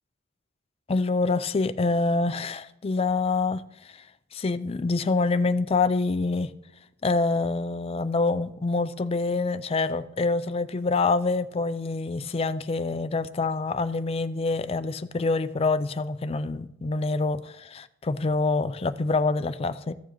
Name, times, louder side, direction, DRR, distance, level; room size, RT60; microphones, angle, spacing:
voice 1, 0.9-4.0 4.3-6.5 7.0-19.9, left 3 dB, 30° left, 0.4 m, -26 dB
14.5 x 7.0 x 3.0 m
head